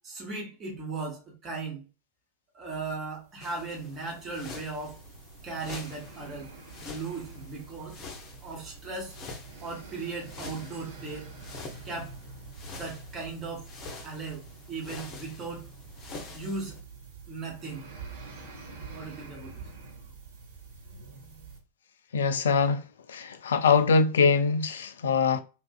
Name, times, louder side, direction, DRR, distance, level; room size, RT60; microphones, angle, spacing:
voice 1, 0.0-1.8 2.5-5.0 5.4-6.5 6.8-8.0 8.4-9.2 9.6-11.3 11.8-12.1 12.7-13.6 14.0-14.4 14.7-15.6 16.3-16.8 17.3-17.9 18.9-19.5, right 3 dB, 30° right, 1.1 m, -37 dB
sound 1, 3.1-21.6, right 4 dB, 60° right, 0.8 m, -47 dB
sound 2, 3.4-16.8, left 3 dB, 35° left, 0.7 m, -46 dB
voice 2, 22.1-22.8 23.1-25.4, left 5 dB, 65° left, 0.3 m, -23 dB
2.9 x 2.5 x 2.3 m
figure-of-eight pair, 90°, 0 cm